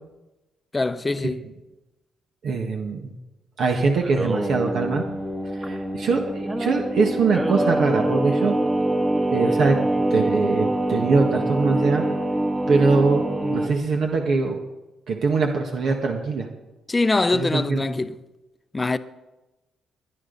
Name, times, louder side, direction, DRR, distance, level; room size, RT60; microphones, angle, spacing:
voice 1, 0.7-1.4 16.9-18.2 18.7-19.0, left 3 dB, 20° left, 0.7 m, -23 dB
voice 2, 2.4-3.1 3.6-5.0 5.5-8.5 9.3-9.8 10.1-12.0 12.7-14.6 15.1-16.5 17.3-17.9, right 4 dB, 65° right, 1.6 m, -22 dB
Singing, 4.0-13.7, right 1 dB, 15° right, 1.5 m, -24 dB
22.0 x 10.0 x 4.0 m
cardioid pair, 90°, 0 cm